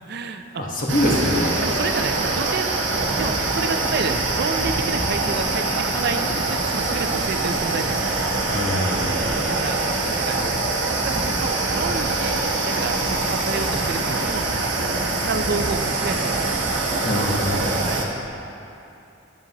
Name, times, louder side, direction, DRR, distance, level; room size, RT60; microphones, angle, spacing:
voice 1, 0.1-0.6 1.6-2.7 3.0-5.6 5.9-6.2 6.5-8.3 9.5-9.8 10.3-10.4 10.9-14.9 15.3-16.6 17.8-18.0, right 4 dB, 60° right, 7 dB, 0.4 m, -30 dB
voice 2, 0.6-1.6 8.5-9.1 17.0-17.7, left 1 dB, 50° left, -2 dB, 1.2 m, -23 dB
sound 1, 0.9-18.0, right 2 dB, 85° right, 1.0 m, -24 dB
11.0 x 7.4 x 2.9 m, 2.8 s
head